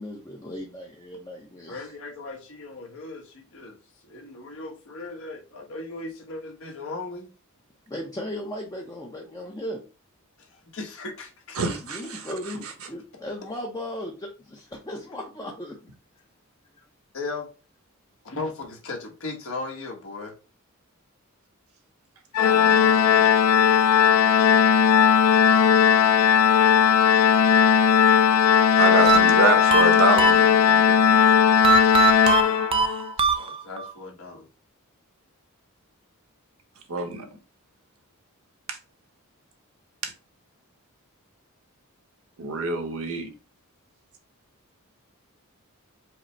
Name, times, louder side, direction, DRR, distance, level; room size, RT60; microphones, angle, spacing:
voice 1, 0.0-2.0 7.9-9.8 11.7-15.8 16.8-16.9, left 1 dB, 15° left, 0.6 m, -36 dB
voice 2, 1.7-3.8 4.0-7.3 10.7-11.6 17.1-17.5 18.2-20.3 33.4-34.4, left 3 dB, 65° left, 1.2 m, -37 dB
voice 3, 11.5-12.7 22.5-23.3 28.5-31.3 32.3-32.4 36.9-37.3 38.7-38.8 40.0-40.1 42.4-43.3, right 3 dB, 75° right, 1.1 m, -27 dB
Organ, 22.3-33.1, left 8 dB, 85° left, 0.3 m, -17 dB
sound 1, 29.1-30.9 31.6-33.9, right 6 dB, 25° right, 0.3 m, -23 dB
4.9 x 2.0 x 4.4 m
head